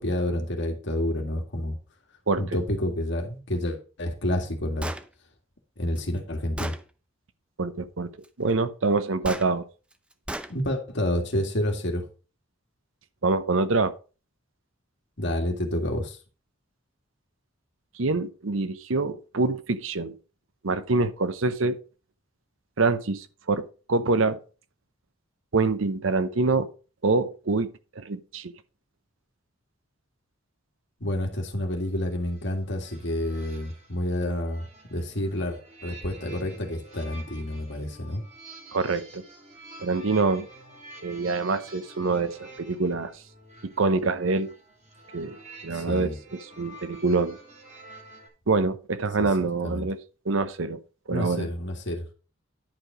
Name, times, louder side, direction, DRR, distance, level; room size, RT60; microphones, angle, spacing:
voice 1, 0.0-1.8 2.4-4.9 5.8-6.7 10.5-12.1 15.2-16.2 31.0-34.7 34.9-38.2 45.7-46.2 49.2-49.3 49.6-49.9 51.1-52.1, left 1 dB, 60° left, 2.0 m, -29 dB
Gunshot gunfire, 4.8-5.1 6.0-6.1 6.6-6.8 9.2-9.5 10.3-10.5, right 1 dB, 5° right, 0.6 m, -33 dB
voice 2, 7.6-8.1 8.4-9.6 13.2-13.9 17.9-20.1 20.6-21.8 22.8-24.4 25.5-26.7 27.0-28.5 38.7-39.2 39.8-40.5 41.0-43.1 43.6-44.5 45.1-45.4 45.6-47.4 48.5-50.0 50.3-50.8 51.1-51.5, right 3 dB, 80° right, 0.8 m, -25 dB
sound 1, 31.7-48.3, right 1 dB, 40° right, 3.1 m, -48 dB
10.5 x 4.9 x 5.0 m
head